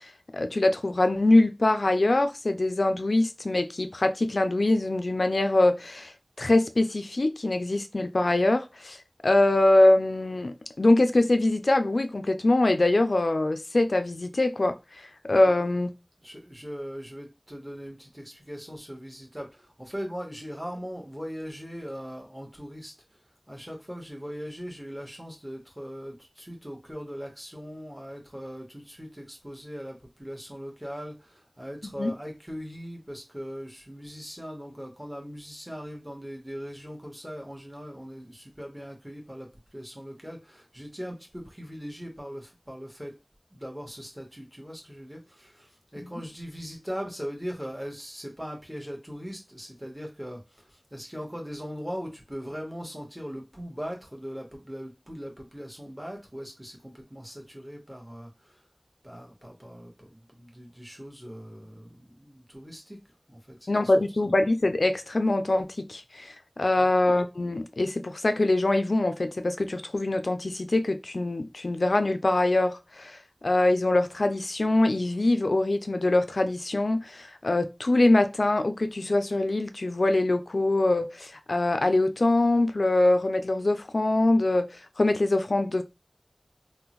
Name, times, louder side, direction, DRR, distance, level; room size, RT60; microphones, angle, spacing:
voice 1, 0.3-6.1 6.4-9.0 9.2-15.9 32.0-32.1 46.0-46.1 63.7-73.2 73.4-84.7 85.0-85.8, left 2 dB, 85° left, 0.3 m, -23 dB
voice 2, 16.2-23.2 23.5-43.1 43.5-58.6 59.0-63.0 63.3-63.9 66.8-66.9, equal, 10° right, 1.1 m, -40 dB
3.6 x 2.1 x 2.9 m
wide cardioid pair, 50°, 0 cm